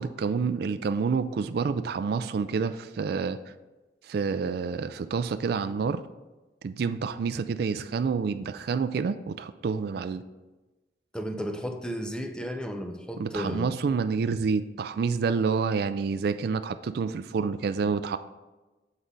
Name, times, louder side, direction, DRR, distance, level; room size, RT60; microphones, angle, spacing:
voice 1, 0.0-3.4 4.0-6.0 6.6-10.2 13.2-18.2, right 5 dB, 60° right, 11 dB, 0.3 m, -28 dB
voice 2, 11.1-13.7, equal, 5° left, 5 dB, 0.5 m, -33 dB
8.1 x 3.8 x 5.3 m, 1.1 s
head